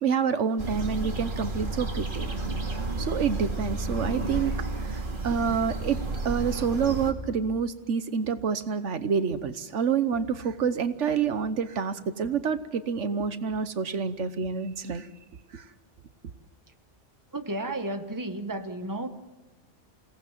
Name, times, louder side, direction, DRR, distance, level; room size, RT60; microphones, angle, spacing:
voice 1, 0.0-2.3 3.0-15.1 15.5-15.6, right 6 dB, 85° right, 11 dB, 1.4 m, -28 dB
sound 1, 0.6-7.1, right 2 dB, 45° right, 2.5 m, -31 dB
voice 2, 17.3-19.1, right 1 dB, 15° right, 7 dB, 1.3 m, -32 dB
28.5 x 18.0 x 7.4 m, 1.2 s
omnidirectional pair, 1.2 m